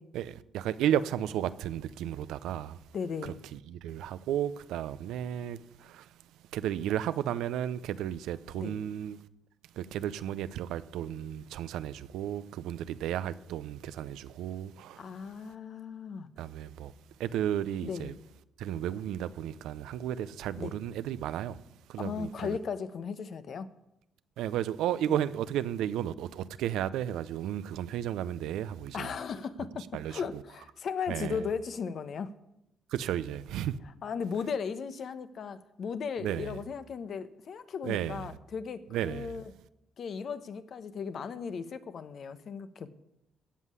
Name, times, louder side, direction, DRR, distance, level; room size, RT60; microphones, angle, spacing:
voice 1, 0.1-2.8 3.2-6.1 6.5-9.2 9.8-15.1 16.4-16.9 17.2-18.1 18.6-21.6 21.9-22.6 24.4-29.1 29.9-30.4 31.1-31.4 32.9-33.8 36.2-36.6 37.8-38.2 38.9-39.4, right 11 dB, 85° right, 0.6 m, -33 dB
voice 2, 2.9-3.4 8.5-8.8 15.0-16.3 17.8-18.2 20.6-20.7 22.0-23.7 25.1-25.2 28.9-32.3 34.0-39.5 40.0-42.9, left 6 dB, 60° left, 1.0 m, -36 dB
16.0 x 5.6 x 9.6 m
cardioid pair, 90°, 0 cm